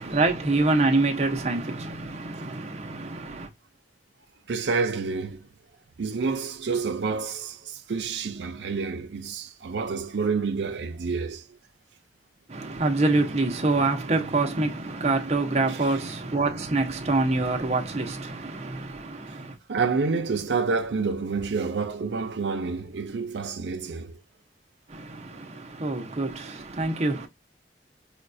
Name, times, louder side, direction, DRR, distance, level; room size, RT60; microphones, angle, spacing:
voice 1, 0.0-3.5 12.5-19.6 24.9-27.3, right 2 dB, 35° right, 0.7 m, -26 dB
voice 2, 4.5-5.4 6.0-11.4 19.7-24.1, right 4 dB, 85° right, 0.5 m, -28 dB
5.1 x 2.2 x 2.5 m
head